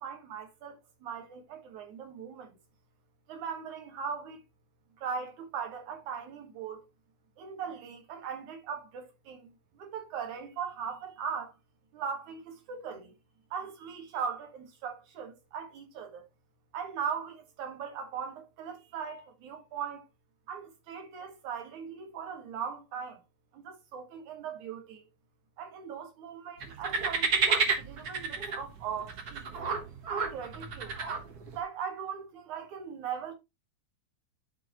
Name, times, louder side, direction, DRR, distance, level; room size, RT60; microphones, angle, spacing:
voice 1, 0.0-2.6 3.3-4.4 5.0-6.9 7.4-11.6 11.9-13.1 13.5-16.2 16.7-20.1 20.5-23.2 23.5-25.0 25.6-29.6 30.1-31.0 31.5-33.3, right 7 dB, 80° right, 3.0 m, -39 dB
sound 1, 26.6-31.6, right 5 dB, 60° right, 1.0 m, -31 dB
12.0 x 4.4 x 2.9 m
omnidirectional pair, 3.4 m